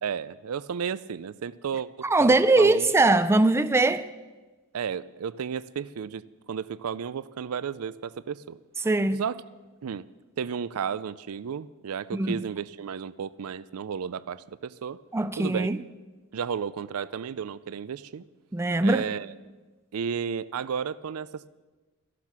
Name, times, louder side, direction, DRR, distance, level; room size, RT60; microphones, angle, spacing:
voice 1, 0.0-3.0 4.7-6.2 6.5-8.6 9.1-9.4 9.8-10.1 10.4-15.0 15.4-15.7 16.3-18.2 18.8-19.3 19.9-21.5, right 7 dB, 75° right, 0.4 m, -33 dB
voice 2, 2.0-4.1 8.8-9.2 12.1-12.4 15.1-15.8 18.5-19.0, right 2 dB, 10° right, 0.4 m, -21 dB
13.5 x 12.0 x 6.0 m
head